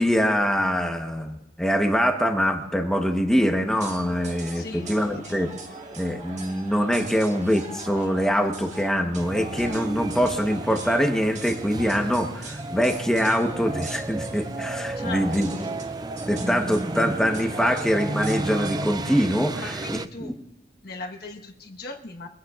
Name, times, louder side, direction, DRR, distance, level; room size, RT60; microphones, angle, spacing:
voice 1, 0.0-5.5 6.0-15.5 16.3-19.8 20.2-20.3, equal, 5° left, 3 dB, 1.0 m, -24 dB
sound 1, 3.7-18.9, right 2 dB, 40° right, 1.8 m, -39 dB
voice 2, 4.5-5.4 15.0-15.7 19.5-20.3 20.8-22.3, left 3 dB, 55° left, 2 dB, 1.2 m, -39 dB
sound 2, 9.2-20.1, right 2 dB, 20° right, 0.4 m, -33 dB
24.0 x 16.0 x 2.4 m, 0.99 s
head